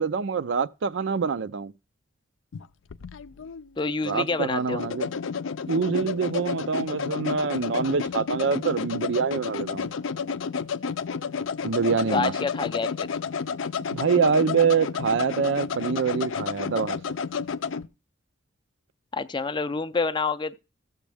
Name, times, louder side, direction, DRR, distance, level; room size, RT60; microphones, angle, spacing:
voice 1, 0.0-1.7 4.0-5.1 5.7-9.9 11.6-12.3 13.9-17.0, right 5 dB, 70° right, 0.4 m, -25 dB
sound 1, 2.5-17.9, left 6 dB, 85° left, 0.5 m, -31 dB
voice 2, 3.8-4.8 12.1-13.1 19.1-20.6, left 4 dB, 25° left, 0.4 m, -27 dB
14.5 x 7.3 x 3.4 m
head